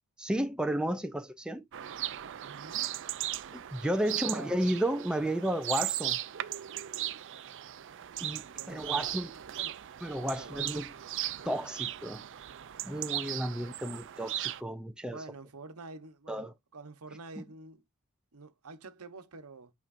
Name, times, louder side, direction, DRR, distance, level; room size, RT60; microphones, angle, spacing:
voice 1, 0.2-1.6 3.5-6.2 8.2-9.3 10.0-10.9 11.5-12.2 12.8-15.2 16.3-16.5 17.4-17.5, right 1 dB, 5° right, 0.4 m, -32 dB
sound 1, 1.7-14.6, right 13 dB, 55° right, 0.5 m, -37 dB
voice 2, 2.4-2.9 4.1-4.5 8.3-9.8 10.2-11.0 15.1-17.8 18.3-19.7, right 3 dB, 80° right, 1.0 m, -48 dB
8.7 x 4.3 x 2.6 m
head